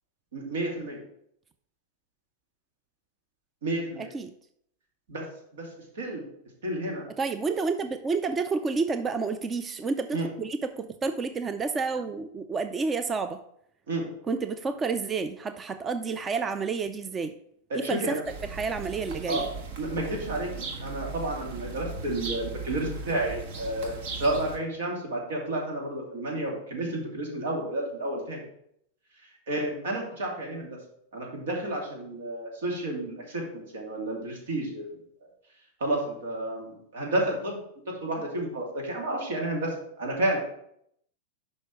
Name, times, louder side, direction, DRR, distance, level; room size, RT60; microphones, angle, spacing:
voice 1, 0.3-1.0 3.6-4.1 5.1-5.3 5.5-5.7 5.9-6.2 6.6-7.0 10.1-10.3 13.9-14.1 17.7-18.2 19.3-19.5 19.8-28.4 29.2-30.8 31.1-35.0 35.8-37.6 38.0-40.4, right 1 dB, 80° right, 0 dB, 2.6 m, -31 dB
voice 2, 4.0-4.3 7.2-13.4 14.3-17.3 17.7-18.2 18.5-19.5, right 4 dB, 20° right, 10 dB, 0.4 m, -30 dB
sound 1, 18.2-24.6, right 4 dB, 65° right, 1.3 m, -38 dB
6.4 x 5.2 x 4.6 m, 0.70 s
supercardioid pair, 130°, 0 cm